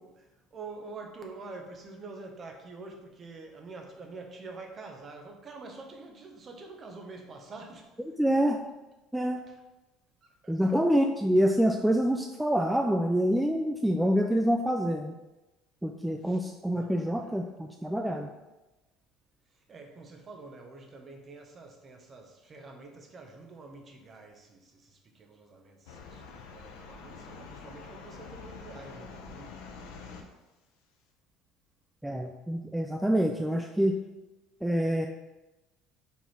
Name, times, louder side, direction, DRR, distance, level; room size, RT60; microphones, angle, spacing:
voice 1, 0.0-7.9 8.2-8.4 9.5-9.6 10.2-10.8 16.2-16.4 16.7-17.3 19.7-29.7, right 3 dB, 35° right, 3 dB, 1.2 m, -47 dB
voice 2, 8.2-8.6 9.1-9.4 10.5-15.2 15.8-18.3 32.0-33.9 34.6-35.1, equal, 5° right, 2 dB, 0.4 m, -26 dB
sound 1, 25.9-30.2, left 4 dB, 85° left, 0.9 m, -46 dB
5.7 x 4.2 x 4.5 m, 1.1 s
supercardioid pair, 105°, 0 cm